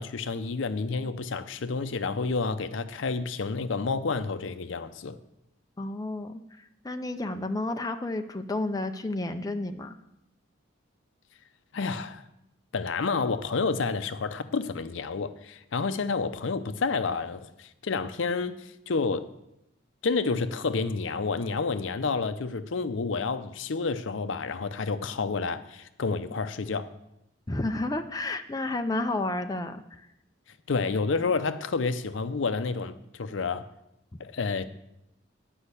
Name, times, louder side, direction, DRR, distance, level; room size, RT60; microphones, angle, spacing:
voice 1, 0.0-5.2 11.7-12.2 12.7-19.3 20.0-26.9 30.7-33.7 34.2-34.7, left 4 dB, 70° left, 0.6 m, -29 dB
voice 2, 5.8-9.9 27.5-30.1, left 2 dB, 20° left, 0.5 m, -31 dB
10.0 x 5.4 x 8.3 m
head